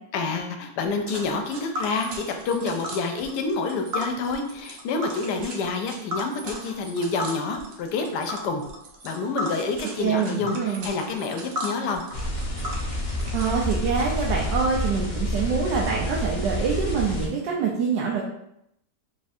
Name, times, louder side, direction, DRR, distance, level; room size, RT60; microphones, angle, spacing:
voice 1, 0.1-8.6 9.0-12.0, left 4 dB, 75° left, 5 dB, 1.2 m, -28 dB
Tick, 1.1-13.7, equal, 60° right, 1.0 m, -36 dB
voice 2, 10.0-10.9 13.3-18.2, right 5 dB, 85° right, -3 dB, 1.3 m, -25 dB
sound 1, 12.1-17.3, equal, 50° left, 0.5 m, -28 dB
3.5 x 2.4 x 4.2 m, 0.78 s
omnidirectional pair, 1.8 m